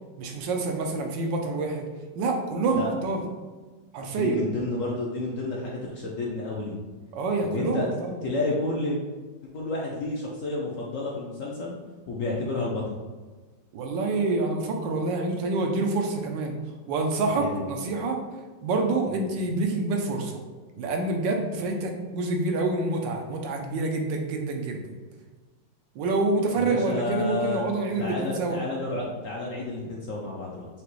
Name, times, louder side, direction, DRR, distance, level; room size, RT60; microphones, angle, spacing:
voice 1, 0.2-1.9 2.2-3.2 3.9-4.4 7.1-8.2 13.7-16.6 16.9-18.2 18.6-20.4 20.8-24.9 25.9-28.6, right 3 dB, 80° right, 2 dB, 1.4 m, -27 dB
voice 2, 4.1-6.8 7.4-7.9 8.2-9.0 9.5-11.8 12.1-13.0 17.4-17.6 19.1-19.2 26.6-27.6 28.0-30.7, left 2 dB, 65° left, -3 dB, 0.8 m, -30 dB
5.0 x 2.9 x 3.1 m, 1.3 s
omnidirectional pair, 2.0 m